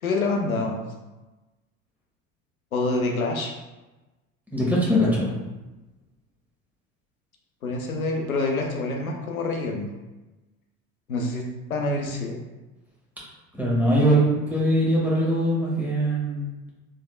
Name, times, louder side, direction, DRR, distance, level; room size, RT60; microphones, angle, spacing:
voice 1, 0.0-0.8 2.7-3.5 7.6-9.9 11.1-12.4, left 2 dB, 85° left, 1 dB, 0.5 m, -26 dB
voice 2, 4.5-5.3 13.5-16.5, equal, 5° right, -6 dB, 1.2 m, -22 dB
3.2 x 3.2 x 2.4 m, 1.1 s
figure-of-eight pair, 65°, 41 cm